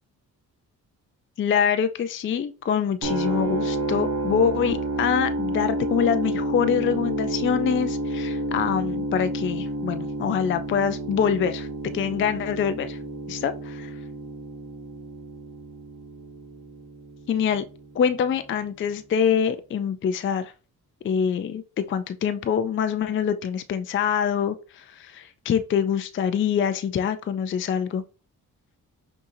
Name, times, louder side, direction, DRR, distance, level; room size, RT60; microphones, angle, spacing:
voice 1, 1.4-13.0 13.3-13.9 17.3-17.6 17.9-20.5 21.0-28.0, left 7 dB, 35° left, 0.4 m, -25 dB
sound 1, 3.0-18.9, right 2 dB, 60° right, 1.4 m, -30 dB
5.5 x 2.7 x 2.6 m
supercardioid pair, 50°, 40 cm